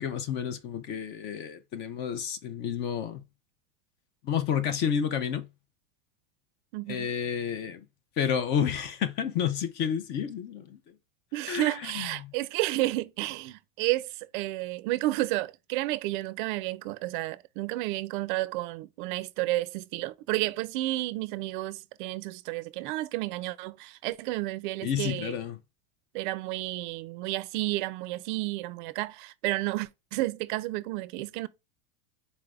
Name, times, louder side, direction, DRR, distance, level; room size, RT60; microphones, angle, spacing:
voice 1, 0.0-3.2 4.2-5.5 6.9-7.8 8.2-10.8 11.5-12.3 24.8-25.6, left 8 dB, 35° left, 0.5 m, -30 dB
voice 2, 6.7-7.1 11.3-25.3 26.1-31.5, right 18 dB, 55° right, 0.4 m, -31 dB
4.1 x 3.3 x 2.3 m
supercardioid pair, 150°, 31 cm